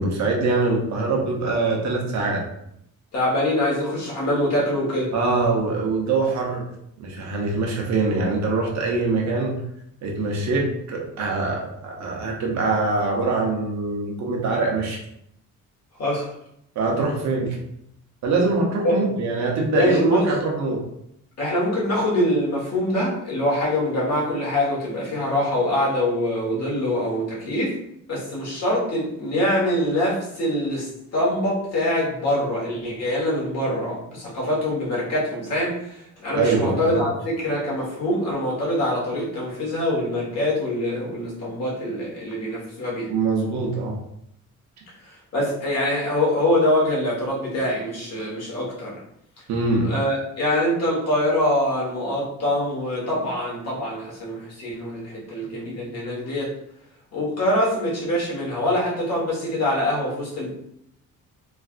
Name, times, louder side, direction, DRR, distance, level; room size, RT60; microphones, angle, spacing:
voice 1, 0.0-2.4 5.1-6.6 7.0-9.6 10.0-15.0 16.8-17.6 18.2-20.8 36.3-37.0 43.1-44.0 49.5-49.9, right 3 dB, 60° right, -1 dB, 0.8 m, -23 dB
voice 2, 3.1-5.1 16.0-16.3 18.8-19.0 19.7-20.2 21.4-27.7 28.1-30.9 31.1-37.1 37.4-43.1 45.3-48.9 49.9-56.5 57.1-60.5, left 1 dB, 55° left, -5 dB, 1.3 m, -24 dB
3.3 x 2.4 x 2.4 m, 0.75 s
cardioid pair, 130°, 32 cm